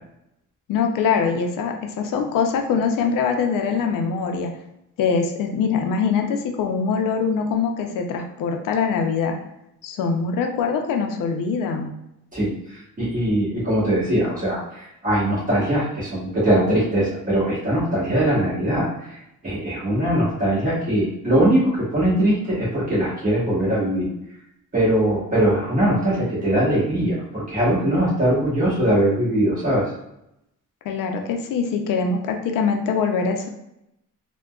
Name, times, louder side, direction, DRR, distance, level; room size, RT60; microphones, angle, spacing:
voice 1, 0.7-4.5 5.0-9.4 9.8-11.9 30.9-33.5, left 5 dB, 85° left, 4 dB, 0.5 m, -23 dB
voice 2, 12.3-24.1 24.7-29.9, right 1 dB, 25° right, -9 dB, 1.1 m, -21 dB
3.6 x 2.2 x 2.2 m, 0.84 s
cardioid pair, 155°, 32 cm